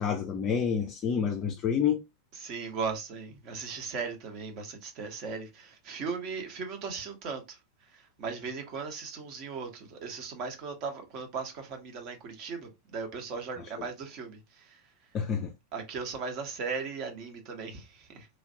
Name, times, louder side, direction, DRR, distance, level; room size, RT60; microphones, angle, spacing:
voice 1, 0.0-2.0 15.1-15.5, left 7 dB, 30° left, 0.4 m, -28 dB
voice 2, 2.3-7.6 7.9-14.8 15.7-18.3, right 5 dB, 40° right, 0.9 m, -37 dB
3.1 x 2.5 x 2.7 m
figure-of-eight pair, 90°, 0 cm